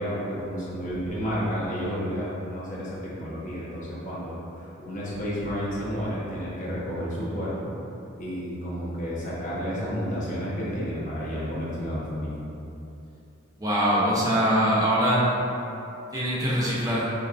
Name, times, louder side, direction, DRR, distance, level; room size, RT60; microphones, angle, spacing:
voice 1, 0.0-4.4 4.8-7.7 8.2-12.4, equal, 35° left, -8 dB, 1.1 m, -31 dB
voice 2, 13.6-15.4 16.1-17.1, equal, 15° right, -7 dB, 0.9 m, -23 dB
6.6 x 2.9 x 2.6 m, 2.8 s
head